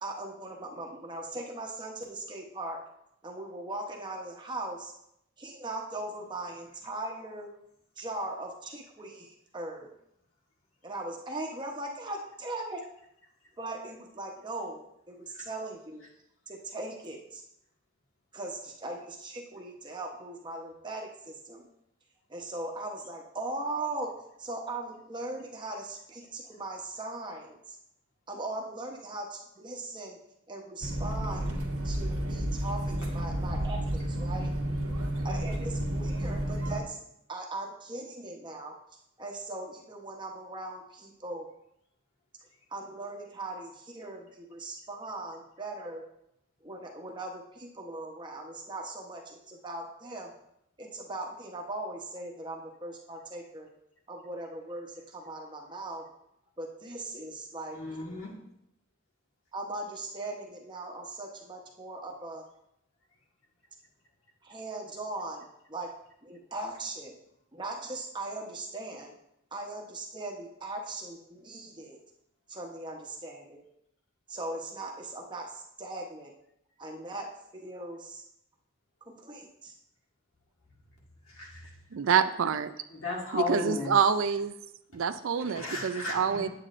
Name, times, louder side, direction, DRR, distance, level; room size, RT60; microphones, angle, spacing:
voice 1, 0.0-2.8 3.2-4.9 5.4-7.5 8.0-9.9 10.8-12.8 13.6-16.0 16.5-17.4 18.3-21.7 22.3-24.1 24.4-27.8 28.3-30.2 30.5-31.5 31.8-34.5 35.2-37.0 37.3-38.7 39.2-41.5 42.7-46.0 46.6-50.3 50.8-53.7 54.1-56.0 56.6-57.8 59.5-62.4 64.4-65.9 66.2-67.2 67.5-69.1 69.5-72.0 72.5-73.6 74.3-76.3 76.8-78.2 79.1-79.7, right 2 dB, 20° right, 1 dB, 0.9 m, -39 dB
sound 1, 30.8-36.8, right 1 dB, 90° right, 1.4 m, -31 dB
voice 2, 57.7-58.3 81.4-81.6 82.9-83.9 85.4-86.5, left 3 dB, 65° left, -3 dB, 1.9 m, -34 dB
voice 3, 81.9-82.7 83.3-84.5 84.9-86.5, right 7 dB, 65° right, 11 dB, 0.4 m, -26 dB
8.4 x 8.3 x 2.5 m, 0.78 s
head